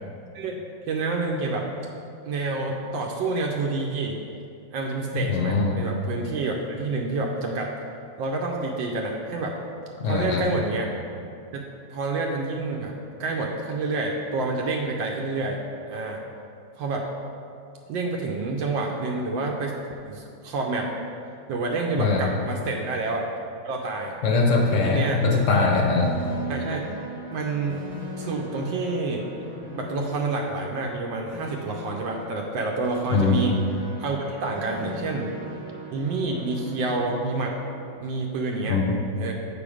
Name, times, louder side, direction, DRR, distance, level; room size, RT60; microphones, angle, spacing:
voice 1, 0.3-1.7 2.2-4.2 4.7-7.7 8.2-9.6 10.0-10.9 11.5-12.9 13.2-15.6 15.9-16.2 16.8-17.1 17.9-19.8 20.0-20.9 21.5-23.3 23.6-24.1 24.7-25.2 26.5-26.8 27.3-27.8 28.2-29.2 29.8-33.6 34.0-35.3 35.9-37.5 38.0-38.8 39.2-39.3, right 3 dB, 75° right, 0 dB, 1.3 m, -28 dB
voice 2, 5.1-5.8 10.0-10.4 22.0-22.3 24.2-26.1 33.1-33.4 38.7-38.8, left 4 dB, 65° left, 1 dB, 0.8 m, -21 dB
sound 1, 24.5-38.0, equal, 5° right, 1.1 m, -38 dB
7.0 x 5.2 x 4.8 m, 2.6 s
omnidirectional pair, 2.1 m